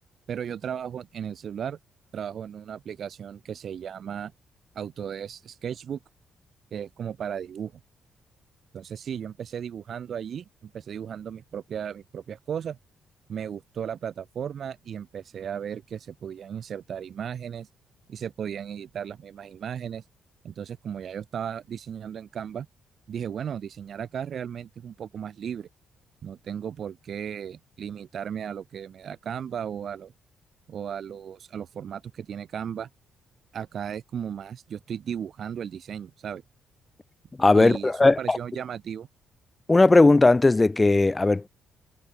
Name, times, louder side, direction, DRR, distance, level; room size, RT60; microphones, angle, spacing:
voice 1, 0.3-1.8 2.1-4.3 4.7-6.0 6.7-7.7 8.7-12.8 13.3-17.7 18.1-20.0 20.4-22.7 23.1-25.7 26.2-30.1 30.7-32.9 33.5-36.4 37.6-39.1, right 8 dB, 55° right, 0.7 m, -35 dB
voice 2, 37.4-38.4 39.7-41.5, left 2 dB, 20° left, 0.4 m, -18 dB
cardioid pair, 110°, 0 cm